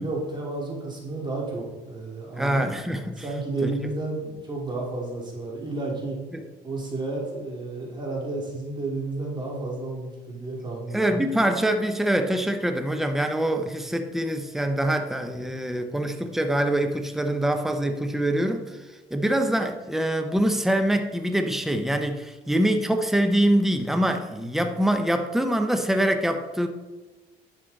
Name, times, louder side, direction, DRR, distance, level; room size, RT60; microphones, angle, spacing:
voice 1, 0.0-2.7 3.2-6.2 6.6-11.3 15.2-15.6, right 2 dB, 25° right, -2 dB, 2.5 m, -32 dB
voice 2, 2.4-3.1 3.6-3.7 6.3-6.4 10.9-26.7, right 1 dB, ahead, 6 dB, 0.7 m, -24 dB
10.5 x 6.6 x 4.0 m, 1.2 s
cardioid pair, 110°, 17 cm